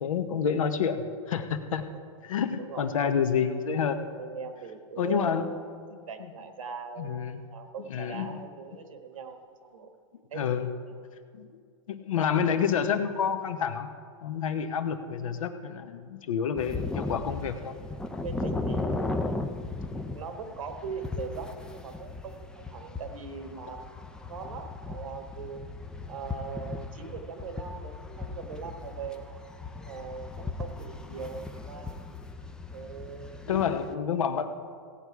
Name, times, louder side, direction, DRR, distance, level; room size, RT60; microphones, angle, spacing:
voice 1, 0.0-1.8 2.2-4.0 5.0-5.5 7.0-7.4 7.9-8.3 10.3-10.7 11.3-11.5 11.9-13.9 14.2-17.7 33.5-34.5, left 7 dB, 80° left, 8 dB, 1.1 m, -28 dB
voice 2, 2.6-3.0 4.1-7.2 7.5-9.9 10.3-10.4 10.8-10.9 18.2-19.3 20.1-24.0 24.3-25.7 26.1-29.4 29.7-32.0 32.7-33.9, right 5 dB, 85° right, 6 dB, 1.6 m, -40 dB
sound 1, 16.5-33.9, left 3 dB, 5° left, 0.4 m, -37 dB
16.5 x 8.5 x 4.7 m, 2.1 s
hypercardioid pair, 140°, 17 cm